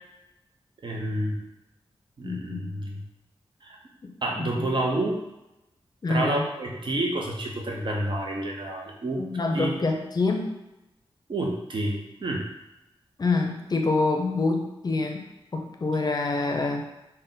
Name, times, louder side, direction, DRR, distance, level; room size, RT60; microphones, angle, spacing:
voice 1, 0.8-1.4 2.2-3.0 3.6-3.8 4.2-5.2 6.1-9.3 9.5-9.7 11.3-12.5, right 1 dB, 55° right, -1 dB, 0.7 m, -29 dB
voice 2, 2.2-2.7 4.0-4.7 6.0-6.5 9.2-10.6 13.2-16.9, left 3 dB, 45° left, 3 dB, 0.5 m, -27 dB
3.8 x 2.2 x 3.9 m, 0.95 s
wide cardioid pair, 75°, 10 cm